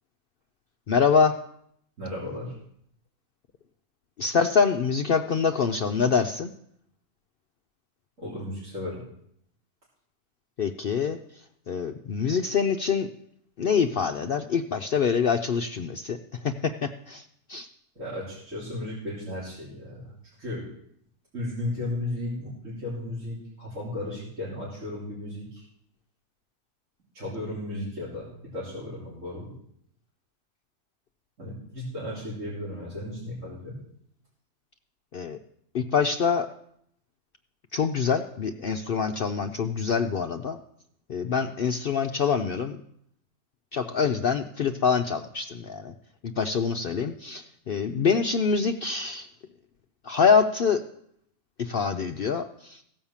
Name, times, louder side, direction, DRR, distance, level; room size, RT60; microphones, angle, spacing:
voice 1, 0.9-1.4 4.2-6.5 10.6-11.2 11.7-13.1 13.6-16.2 16.4-17.2 17.5-17.7 35.1-35.4 35.7-36.5 37.7-40.6 41.1-42.8 43.7-45.9 46.4-49.3 50.1-50.8 51.6-52.8, left 6 dB, 60° left, 5 dB, 0.5 m, -25 dB
voice 2, 2.0-2.5 8.2-9.0 18.0-20.1 20.4-20.6 21.3-25.6 27.1-29.5 31.4-33.8, left 1 dB, 55° right, -9 dB, 3.9 m, -35 dB
16.0 x 5.4 x 7.2 m, 0.71 s
omnidirectional pair, 1.5 m